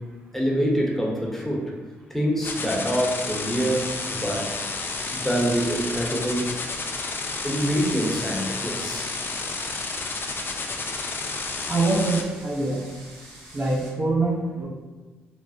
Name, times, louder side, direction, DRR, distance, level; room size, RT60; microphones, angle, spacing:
voice 1, 0.3-1.7 2.1-4.6 5.1-6.5 7.4-9.1, equal, 5° left, -3 dB, 0.8 m, -25 dB
sound 1, 2.4-12.2, left 3 dB, 45° left, 0.4 m, -31 dB
sound 2, 4.9-13.9, right 1 dB, 85° right, 0.9 m, -46 dB
voice 2, 11.7-12.9 13.5-14.7, right 2 dB, 40° right, -3 dB, 0.6 m, -24 dB
3.1 x 2.0 x 2.6 m, 1.3 s
supercardioid pair, 50°, 5 cm